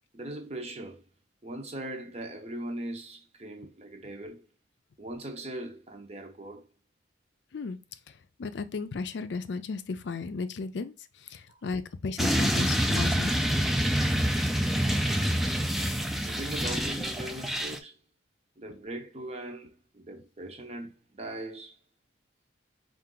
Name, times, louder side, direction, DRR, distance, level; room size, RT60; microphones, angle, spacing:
voice 1, 0.1-1.0 1.4-4.4 5.0-6.7 11.5-11.6 14.7-15.1 16.2-18.0 18.6-21.8, right 1 dB, 35° right, 0.7 m, -40 dB
voice 2, 8.4-13.4, left 4 dB, 70° left, 0.4 m, -34 dB
sound 1, 12.2-17.8, equal, ahead, 0.3 m, -27 dB
4.6 x 2.5 x 3.7 m
head